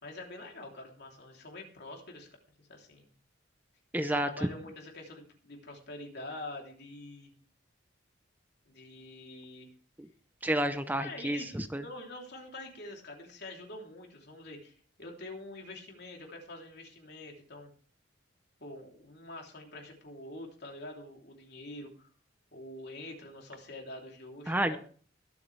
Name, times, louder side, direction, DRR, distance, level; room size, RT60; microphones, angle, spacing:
voice 1, 0.0-2.3 2.7-3.1 4.0-7.3 8.6-9.7 10.9-17.7 18.6-22.1 22.5-24.8, left 2 dB, 55° left, 1 dB, 3.3 m, -46 dB
voice 2, 3.9-4.5 10.4-11.8 24.5-24.8, right 1 dB, 10° right, 10 dB, 0.6 m, -30 dB
22.0 x 8.2 x 3.4 m, 0.44 s
head